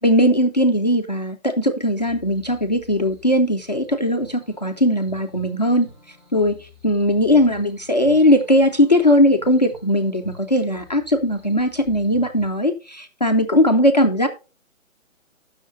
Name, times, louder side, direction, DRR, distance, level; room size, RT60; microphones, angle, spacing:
voice 1, 0.0-5.9 6.3-14.3, left 1 dB, 30° left, 0.6 m, -19 dB
sound 1, 2.0-12.5, equal, 30° right, 2.9 m, -46 dB
18.0 x 6.4 x 2.5 m
hypercardioid pair, 175°, 40 cm